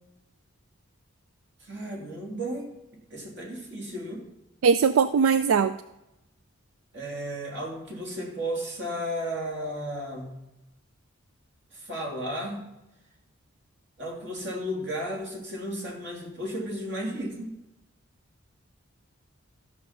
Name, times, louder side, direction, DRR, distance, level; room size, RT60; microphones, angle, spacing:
voice 1, 1.6-2.7 3.1-4.2 6.9-10.3 11.7-12.6 14.0-17.6, equal, 60° right, -1 dB, 2.9 m, -34 dB
voice 2, 4.6-5.7, right 6 dB, 85° right, 13 dB, 0.4 m, -20 dB
13.5 x 6.6 x 5.7 m, 0.94 s
head